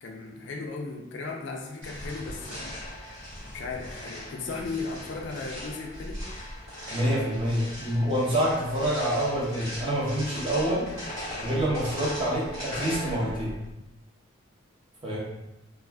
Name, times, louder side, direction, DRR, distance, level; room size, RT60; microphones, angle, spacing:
voice 1, 0.0-2.8 3.5-6.3 7.8-8.1, left 3 dB, 60° left, 1 dB, 0.4 m, -36 dB
sound 1, 1.8-13.7, equal, 75° right, 1.2 m, -39 dB
voice 2, 6.9-10.9 11.4-13.5 15.0-15.2, equal, 25° right, -7 dB, 0.8 m, -27 dB
2.4 x 2.4 x 3.3 m, 0.92 s
head